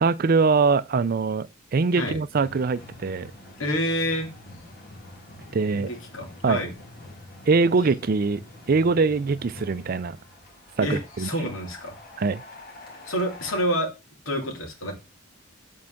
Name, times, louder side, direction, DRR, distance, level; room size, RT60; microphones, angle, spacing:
voice 1, 0.0-1.5 1.7-3.3 5.5-5.9 6.4-6.6 7.5-8.4 8.7-10.2 10.8-11.3 12.2-12.4, right 4 dB, 45° right, 0.4 m, -22 dB
sound 1, 2.3-13.6, left 2 dB, 45° left, 2.1 m, -46 dB
voice 2, 3.6-4.3 5.7-6.7 10.8-11.9 13.1-13.9 14.3-14.9, equal, 80° left, 2.5 m, -28 dB
7.6 x 4.6 x 5.8 m
head